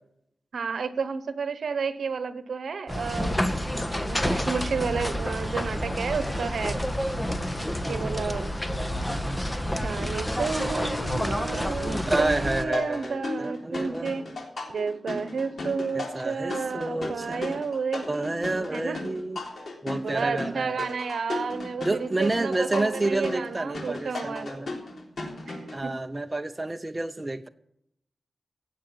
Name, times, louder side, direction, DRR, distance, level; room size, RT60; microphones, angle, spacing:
voice 1, 0.5-3.4 4.0-6.8 7.8-8.5 9.8-14.2 14.7-19.0 20.0-24.5 25.5-25.9, right 5 dB, 80° right, 1.0 m, -31 dB
sound 1, 2.9-12.6, equal, 15° left, 1.3 m, -29 dB
voice 2, 12.1-14.1 16.1-17.6 18.1-19.5 19.8-20.8 21.8-24.8 25.7-27.5, right 2 dB, 25° right, 0.8 m, -29 dB
sound 2, 12.7-25.8, left 2 dB, 70° left, 3.6 m, -36 dB
16.5 x 7.6 x 7.0 m
wide cardioid pair, 75°, 0 cm